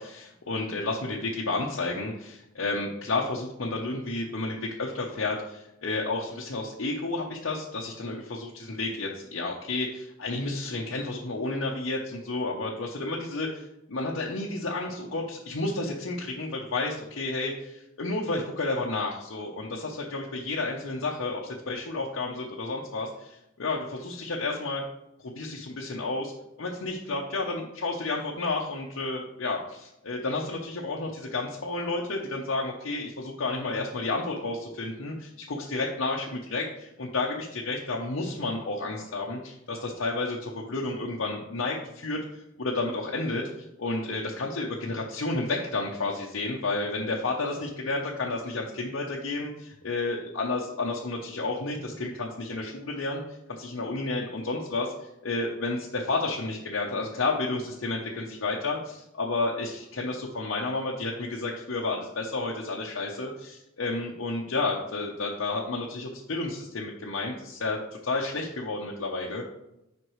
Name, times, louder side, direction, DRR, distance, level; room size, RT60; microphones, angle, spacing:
voice 1, 0.0-24.8 25.2-26.3 26.6-42.2 42.6-53.2 53.5-69.4, left 3 dB, 75° left, -2 dB, 0.8 m, -31 dB
7.9 x 5.2 x 3.1 m, 0.87 s
head